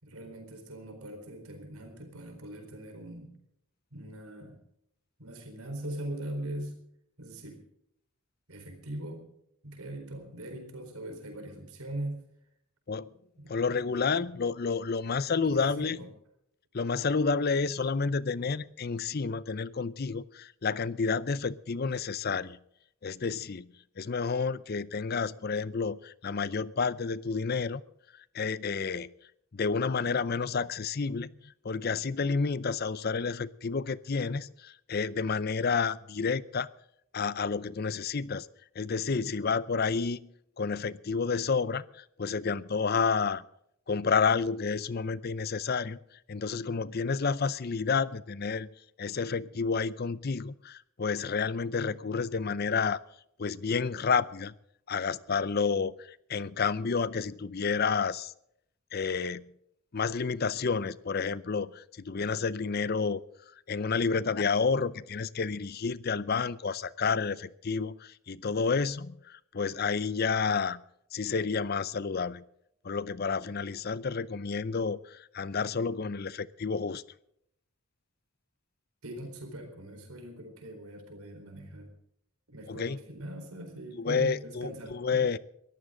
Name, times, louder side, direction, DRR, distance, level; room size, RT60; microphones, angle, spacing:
voice 1, 0.0-3.3 3.9-4.6 5.2-6.8 7.2-7.6 8.5-9.3 9.6-12.3 13.4-14.2 15.4-16.1 79.0-81.9 82.5-85.3, right 1 dB, 80° right, 5 dB, 4.3 m, -41 dB
voice 2, 13.5-16.0 16.7-22.6 23.0-23.7 24.0-27.8 28.1-29.1 29.5-36.7 37.1-38.5 38.8-43.4 43.9-46.0 46.3-48.7 49.0-53.0 53.4-54.5 54.9-58.3 58.9-59.4 59.9-63.2 63.7-70.8 71.1-72.4 72.8-77.0 82.7-83.0 84.0-85.4, left 5 dB, 45° left, 18 dB, 0.5 m, -30 dB
22.5 x 14.5 x 3.8 m, 0.74 s
head